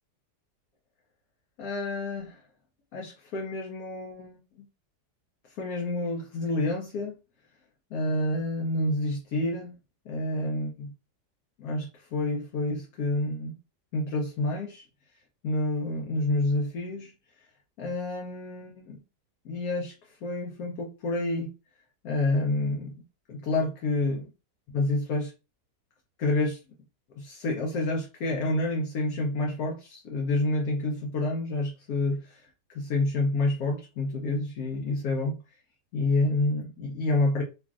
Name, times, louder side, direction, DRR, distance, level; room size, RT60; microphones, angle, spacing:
voice 1, 1.6-2.4 2.9-4.6 5.4-7.2 7.9-9.7 10.1-10.9 11.6-13.6 13.9-14.9 15.4-17.1 17.8-19.0 19.4-21.5 22.0-23.0 23.3-24.3 24.7-25.3 26.2-26.6 27.2-35.4 35.9-37.4, left 2 dB, 70° left, 1.0 m, -29 dB
3.1 x 2.5 x 2.4 m
omnidirectional pair, 1.7 m